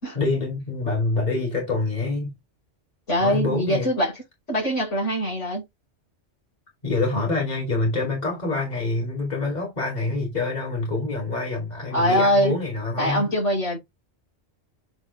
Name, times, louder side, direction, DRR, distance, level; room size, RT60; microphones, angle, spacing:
voice 1, 0.1-2.3 3.2-3.9 6.8-13.3, left 3 dB, 35° left, 2.9 m, -26 dB
voice 2, 3.1-4.2 4.5-5.6 7.1-7.2 11.9-12.6 13.0-13.8, equal, 80° left, 5.9 m, -23 dB
8.0 x 3.6 x 3.4 m
omnidirectional pair, 1.2 m